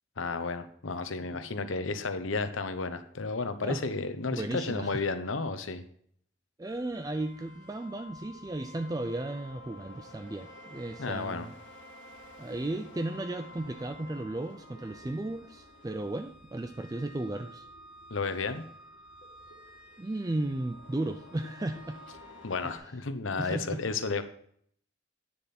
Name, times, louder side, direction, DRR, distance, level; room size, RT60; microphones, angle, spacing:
voice 1, 0.2-5.8 11.0-11.5 18.1-18.6 22.4-24.2, left 4 dB, 90° left, 10 dB, 0.9 m, -32 dB
voice 2, 4.3-5.0 6.6-11.5 12.4-17.7 20.0-22.0 23.4-23.8, right 2 dB, 20° right, 8 dB, 0.4 m, -35 dB
sound 1, 6.6-22.8, left 1 dB, 70° left, 2.0 m, -51 dB
9.6 x 6.7 x 4.2 m, 0.65 s
head